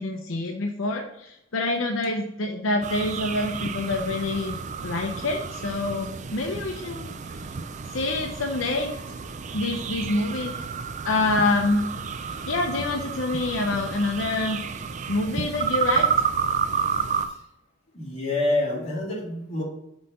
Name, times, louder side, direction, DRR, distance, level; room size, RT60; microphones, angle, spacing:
voice 1, 0.0-7.1 7.9-8.9 9.5-10.6 11.0-11.9 12.5-14.6 15.1-16.1, left 2 dB, 75° left, 2 dB, 0.7 m, -26 dB
sound 1, 2.8-17.3, right 6 dB, 35° right, 0.4 m, -30 dB
voice 2, 17.9-19.6, left 2 dB, 35° left, -4 dB, 2.1 m, -27 dB
5.5 x 4.0 x 5.6 m, 0.82 s
head